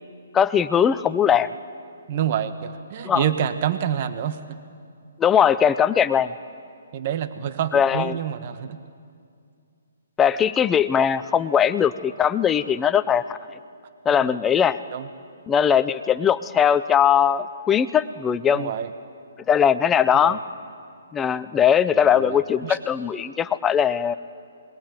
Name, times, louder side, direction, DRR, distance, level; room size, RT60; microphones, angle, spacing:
voice 1, 0.3-1.5 3.0-3.2 5.2-6.3 7.7-8.2 10.2-13.4 14.1-14.8 15.5-18.7 19.5-20.4 21.1-24.1, left 8 dB, 15° left, 13 dB, 0.7 m, -20 dB
voice 2, 2.1-4.6 6.9-8.8 14.3-14.4 14.9-15.1 18.5-18.9 20.1-20.4 21.9-22.8, right 9 dB, 40° right, 10 dB, 1.3 m, -27 dB
28.0 x 21.0 x 9.4 m, 2.3 s
hypercardioid pair, 150°, 0 cm